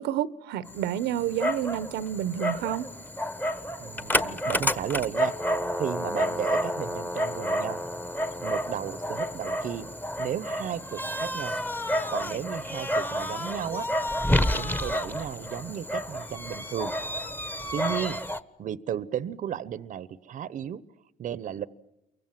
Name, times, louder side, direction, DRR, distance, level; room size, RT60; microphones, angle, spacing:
voice 1, 0.0-2.9, right 11 dB, 85° right, 1.0 m, -29 dB
Dog, 0.7-18.4, equal, 10° left, 1.3 m, -30 dB
voice 2, 3.8-5.3 5.7-7.8 8.4-9.9 10.2-11.6 12.1-13.9 14.4-16.9 17.7-18.2 18.6-20.8 21.2-21.7, right 9 dB, 50° right, 0.9 m, -34 dB
29.0 x 24.0 x 7.4 m
cardioid pair, 110°, 17 cm